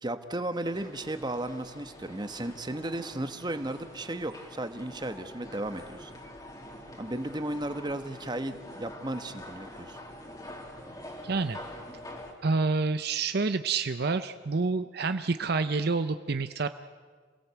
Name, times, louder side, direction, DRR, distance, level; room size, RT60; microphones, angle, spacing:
voice 1, 0.0-6.1 7.0-10.0, right 1 dB, 20° right, 9 dB, 1.2 m, -35 dB
sound 1, 0.6-12.3, left 1 dB, 20° left, 2.5 m, -46 dB
voice 2, 11.2-11.6 12.4-16.7, right 4 dB, 55° right, 10 dB, 0.7 m, -28 dB
27.5 x 17.5 x 8.1 m, 1.6 s
head